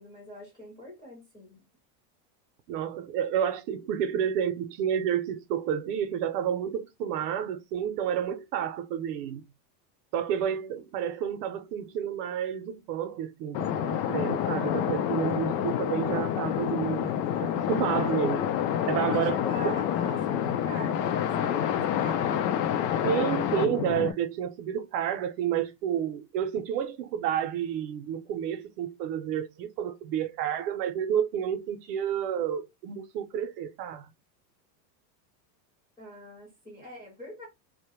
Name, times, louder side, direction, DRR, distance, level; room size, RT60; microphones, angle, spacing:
voice 1, 0.0-1.6 19.1-22.4 36.0-37.5, right 1 dB, 10° left, 0.5 m, -43 dB
voice 2, 2.7-9.4 10.1-17.1 17.4-18.5 18.9-19.7 23.0-34.1, right 9 dB, 70° right, 0.6 m, -30 dB
sound 1, 13.5-24.1, left 9 dB, 75° left, 0.5 m, -28 dB
2.1 x 2.1 x 2.9 m
supercardioid pair, 175°, 49 cm